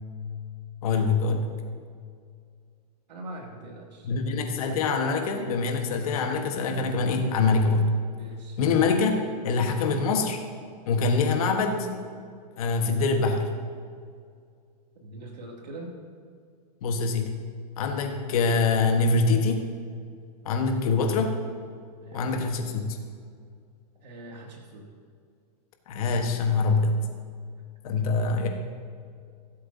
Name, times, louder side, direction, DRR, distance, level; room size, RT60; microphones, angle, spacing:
voice 1, 0.8-1.5 4.0-7.9 8.6-9.1 9.4-10.4 10.9-11.9 12.6-13.5 16.8-17.4 17.8-19.6 20.4-21.3 22.1-22.8 25.9-27.0 27.8-28.5, left 4 dB, 60° left, 4 dB, 1.4 m, -24 dB
voice 2, 3.1-4.1 8.1-8.6 15.0-15.9 20.8-21.0 22.0-22.3 24.0-24.9 28.4-28.5, right 2 dB, 85° right, -1 dB, 2.6 m, -42 dB
16.0 x 7.8 x 2.8 m, 2.2 s
hypercardioid pair, 150°, 21 cm